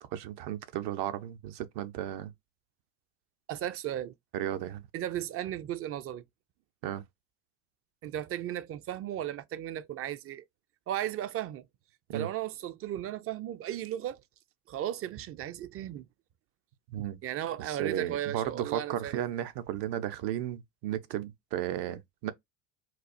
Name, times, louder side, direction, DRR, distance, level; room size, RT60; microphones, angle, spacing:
voice 1, 0.1-2.3 4.3-4.8 6.8-7.0 12.1-12.3 16.9-17.2 17.6-22.3, right 11 dB, 65° right, 0.7 m, -34 dB
voice 2, 3.5-4.1 4.9-6.2 8.0-10.4 10.9-11.7 12.1-14.2 14.7-16.1 17.2-19.2, right 11 dB, 35° right, 0.4 m, -35 dB
4.1 x 2.3 x 2.5 m
supercardioid pair, 90°, 45 cm